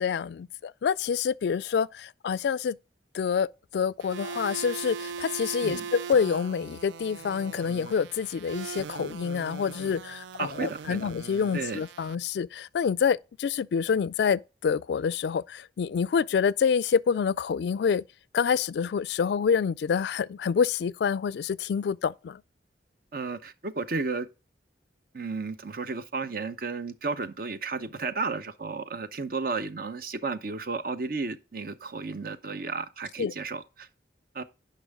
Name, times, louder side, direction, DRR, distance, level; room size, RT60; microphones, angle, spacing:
voice 1, 0.0-2.8 3.1-18.0 18.3-22.4 33.2-33.3, left 6 dB, 70° left, 0.3 m, -27 dB
sound 1, 4.0-12.1, right 6 dB, 85° right, 0.4 m, -40 dB
voice 2, 10.4-11.1 11.5-11.8 23.1-24.3 25.1-33.9 34.3-34.4, right 4 dB, 55° right, 0.8 m, -33 dB
10.0 x 5.5 x 3.6 m
head